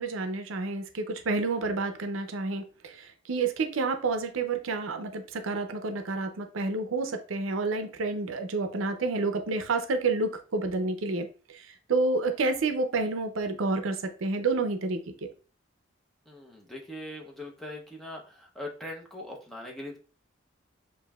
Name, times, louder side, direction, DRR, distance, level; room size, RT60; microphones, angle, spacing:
voice 1, 0.0-15.3, right 3 dB, 80° right, 7 dB, 0.5 m, -29 dB
voice 2, 16.3-20.0, left 1 dB, ahead, -1 dB, 0.7 m, -41 dB
6.7 x 2.6 x 2.3 m, 0.38 s
head